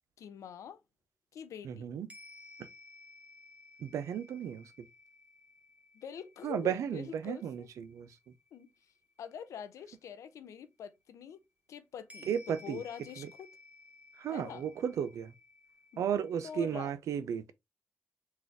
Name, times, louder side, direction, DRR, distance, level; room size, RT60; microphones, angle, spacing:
voice 1, 0.2-0.8 1.3-1.9 5.9-7.7 8.5-8.7 9.2-11.4 11.7-13.5 14.3-14.6 15.9-16.0 16.4-16.9, left 8 dB, 90° left, 0.4 m, -45 dB
voice 2, 1.6-2.1 2.6-2.7 3.8-4.7 6.4-8.1 12.3-12.8 13.2-13.3 14.2-15.3 16.0-17.5, right 8 dB, 90° right, 0.3 m, -34 dB
sound 1, 2.1-10.2 12.1-16.9, left 3 dB, 25° right, 0.9 m, -57 dB
3.9 x 2.4 x 3.3 m
supercardioid pair, 40°, 5 cm